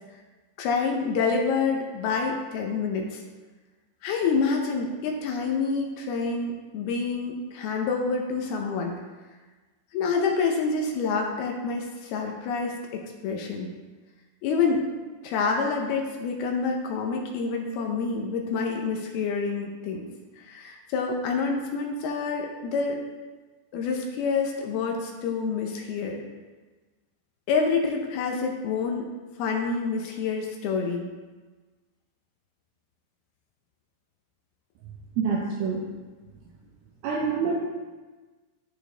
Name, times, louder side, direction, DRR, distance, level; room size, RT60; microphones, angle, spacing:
voice 1, 0.6-3.2 4.0-9.0 9.9-13.7 14.4-14.9 15.2-20.1 20.4-23.0 23.7-26.2 27.5-29.1 29.4-31.1, left 4 dB, 75° left, 1 dB, 2.4 m, -27 dB
voice 2, 35.2-35.8 37.0-37.6, right 5 dB, 75° right, -3 dB, 2.3 m, -26 dB
13.5 x 4.6 x 3.3 m, 1.3 s
omnidirectional pair, 5.1 m